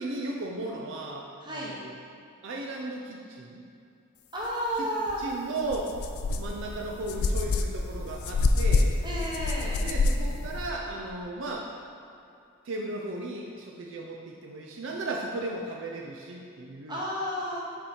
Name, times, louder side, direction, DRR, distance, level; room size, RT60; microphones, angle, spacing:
voice 1, 0.0-2.0 2.4-3.6 4.8-4.9 5.2-5.9 6.4-8.9 9.8-11.7 12.6-17.0, right 2 dB, 60° right, -1 dB, 0.5 m, -35 dB
voice 2, 1.4-1.7 4.3-5.2 9.0-9.8 16.9-17.6, equal, 20° right, -5 dB, 1.1 m, -32 dB
sound 1, 5.1-5.2 5.6-10.7, left 3 dB, 85° left, 0.4 m, -27 dB
5.8 x 4.9 x 4.3 m, 2.5 s
head